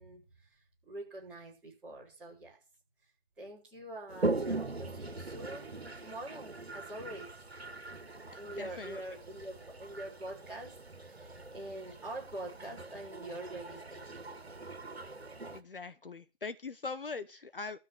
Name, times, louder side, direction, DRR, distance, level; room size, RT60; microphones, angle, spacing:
voice 1, 0.0-2.6 3.4-7.3 8.4-14.3, right 1 dB, 5° right, 5.8 m, -45 dB
Toilet flush, 4.1-15.6, right 2 dB, 75° right, 2.1 m, -40 dB
voice 2, 8.6-9.0 15.5-17.8, left 4 dB, 60° left, 1.0 m, -41 dB
13.0 x 5.8 x 8.6 m
figure-of-eight pair, 155°, 31 cm